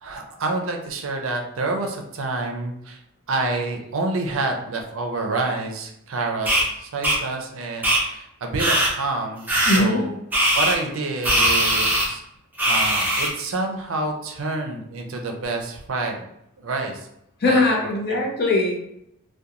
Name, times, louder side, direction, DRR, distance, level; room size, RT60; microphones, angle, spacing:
voice 1, 0.0-3.0 3.3-10.1 10.5-12.2 12.7-16.3 16.6-17.1 17.5-17.8 18.1-18.2, right 2 dB, 65° right, 2 dB, 0.5 m, -28 dB
sound 1, 6.5-6.6 7.0-7.2 7.8-8.0 8.6-8.9 9.5-9.8 10.3-10.7 11.2-12.1 12.6-13.3, right 1 dB, 10° right, 0.5 m, -20 dB
voice 2, 9.7-10.0 17.4-18.7, left 2 dB, 50° left, 0 dB, 0.6 m, -20 dB
2.4 x 2.2 x 2.8 m, 0.77 s
head